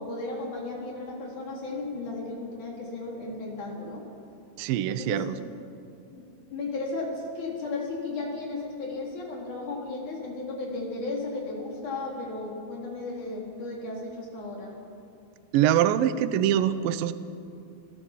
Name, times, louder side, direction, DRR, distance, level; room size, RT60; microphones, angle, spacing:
voice 1, 0.0-4.1 5.0-5.5 6.1-14.7, left 3 dB, 45° left, -2 dB, 5.0 m, -35 dB
voice 2, 4.6-5.4 15.5-17.1, right 11 dB, 85° right, 11 dB, 2.0 m, -24 dB
30.0 x 16.5 x 7.4 m, 2.5 s
omnidirectional pair, 5.2 m